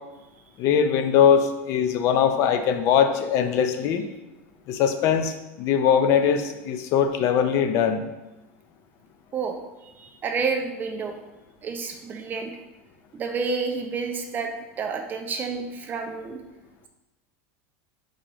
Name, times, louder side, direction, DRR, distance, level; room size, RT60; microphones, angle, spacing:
voice 1, 0.6-4.1 4.7-8.0, left 8 dB, 45° left, 8 dB, 0.5 m, -21 dB
voice 2, 9.8-11.1 11.6-12.5 13.1-14.5 14.8-16.4, right 5 dB, 25° right, 4 dB, 0.4 m, -29 dB
3.8 x 2.8 x 4.8 m, 1.0 s
supercardioid pair, 145°, 7 cm